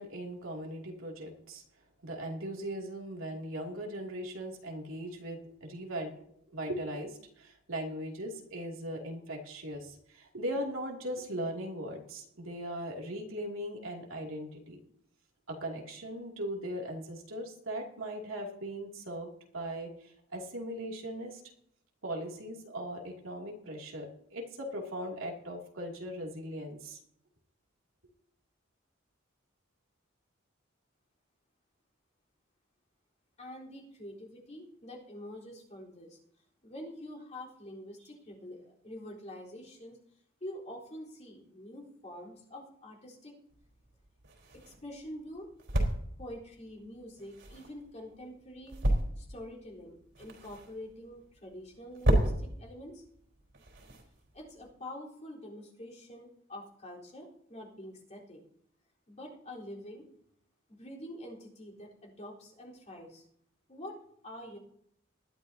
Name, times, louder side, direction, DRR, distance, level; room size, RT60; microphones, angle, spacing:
voice 1, 0.0-1.6 2.0-6.2 6.5-14.8 15.5-21.4 22.0-27.0, right 1 dB, 80° right, 0 dB, 2.7 m, -39 dB
voice 2, 33.4-36.2 36.6-40.0 40.4-43.4 44.6-45.5 46.2-48.8 49.2-53.0 54.3-58.4 59.1-60.1 60.7-63.2 63.7-64.0 64.2-64.6, left 1 dB, 35° left, -4 dB, 4.1 m, -46 dB
sound 1, 43.5-54.7, right 1 dB, 60° right, 4.0 m, -34 dB
20.0 x 12.5 x 2.8 m, 0.71 s
head